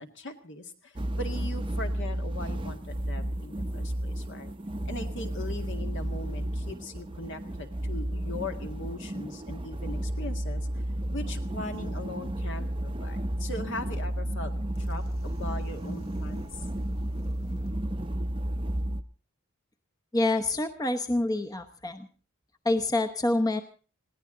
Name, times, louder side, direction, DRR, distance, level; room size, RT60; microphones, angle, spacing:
voice 1, 0.0-4.5 4.9-10.7 11.1-14.5 14.8-16.6, left 2 dB, 60° left, 6 dB, 2.0 m, -40 dB
sound 1, 1.0-19.0, right 1 dB, 25° right, 0.7 m, -32 dB
sound 2, 14.7-17.7, left 1 dB, 80° left, 2.4 m, -52 dB
voice 2, 20.1-22.1 22.6-23.6, left 2 dB, 20° left, 7 dB, 0.9 m, -27 dB
21.0 x 16.5 x 3.8 m, 0.36 s
head